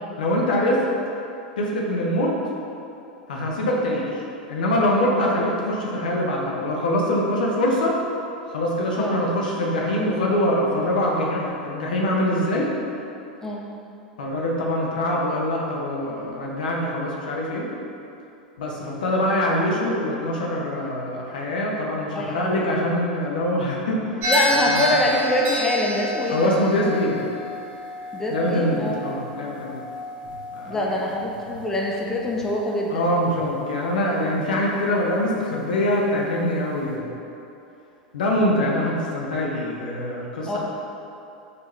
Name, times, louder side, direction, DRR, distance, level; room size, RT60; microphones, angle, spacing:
voice 1, 0.2-0.8 1.6-2.3 3.3-4.2 4.5-7.9 8.5-12.7 14.2-17.7 18.6-24.1 24.7-24.8 26.3-27.2 28.3-29.8 30.6-31.0 32.9-37.1 38.1-40.6, left 1 dB, 65° left, -2 dB, 0.7 m, -24 dB
voice 2, 22.1-22.7 24.3-26.6 28.1-29.0 30.7-33.1 40.5-40.6, left 1 dB, 10° left, -2 dB, 0.5 m, -25 dB
sound 1, 24.2-32.6, left 1 dB, 40° right, 1.2 m, -30 dB
5.3 x 2.9 x 3.1 m, 2.7 s
figure-of-eight pair, 90°, 5 cm